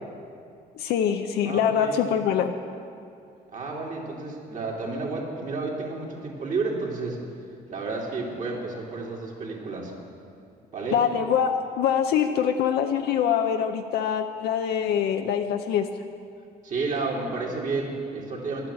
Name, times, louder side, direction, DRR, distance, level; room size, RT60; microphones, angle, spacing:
voice 1, 0.8-2.5 10.9-15.9, left 8 dB, 75° left, 5 dB, 0.6 m, -24 dB
voice 2, 1.4-2.3 3.5-7.2 7.7-9.9 10.7-11.0 16.6-18.7, right 3 dB, 50° right, -3 dB, 2.9 m, -31 dB
11.0 x 8.9 x 8.2 m, 2.4 s
cardioid pair, 110°, 17 cm